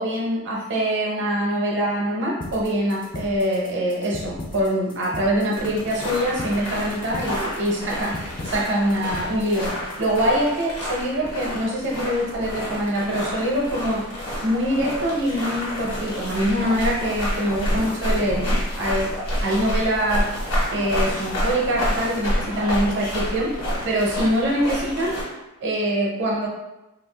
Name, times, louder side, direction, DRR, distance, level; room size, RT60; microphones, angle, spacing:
voice 1, 0.0-14.1 14.4-19.1 19.4-20.3 20.7-23.5 23.8-25.2 25.6-26.5, equal, 55° right, -2 dB, 0.7 m, -24 dB
sound 1, 2.4-10.4, left 2 dB, 20° left, 0.3 m, -38 dB
sound 2, 5.5-25.2, equal, 75° left, 1.3 m, -28 dB
2.5 x 2.4 x 3.2 m, 0.98 s
head